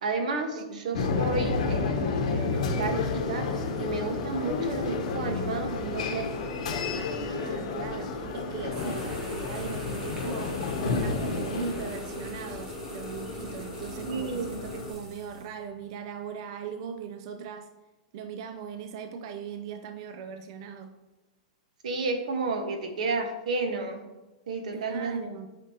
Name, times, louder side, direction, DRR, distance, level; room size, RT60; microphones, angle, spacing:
voice 1, 0.0-3.5 3.8-6.3 14.1-14.5 21.8-24.0 24.5-25.2, right 3 dB, 90° right, 5 dB, 1.3 m, -31 dB
sound 1, 0.9-12.2, left 4 dB, 65° left, 1.1 m, -31 dB
sound 2, 2.5-14.9, left 1 dB, 35° left, 2.0 m, -39 dB
voice 2, 7.2-10.5 10.8-17.7 18.1-21.0 24.7-25.5, right 6 dB, 45° right, 7 dB, 0.4 m, -39 dB
sound 3, 8.7-15.5, equal, 15° right, 1.4 m, -46 dB
8.3 x 5.0 x 2.9 m, 1.1 s
supercardioid pair, 160°, 4 cm